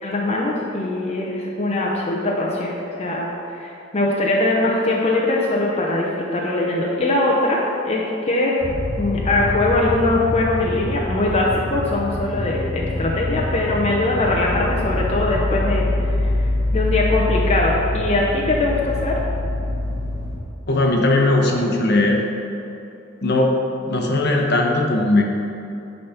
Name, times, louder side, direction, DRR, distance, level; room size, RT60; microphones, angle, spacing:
voice 1, 0.0-8.7 9.0-19.2, left 2 dB, 30° left, -3 dB, 0.8 m, -21 dB
sound 1, 8.6-20.4, left 1 dB, 20° right, 1.5 m, -25 dB
voice 2, 20.7-22.2 23.2-23.5 23.9-25.2, left 2 dB, 55° left, 1 dB, 1.1 m, -18 dB
10.0 x 4.2 x 5.7 m, 2.8 s
head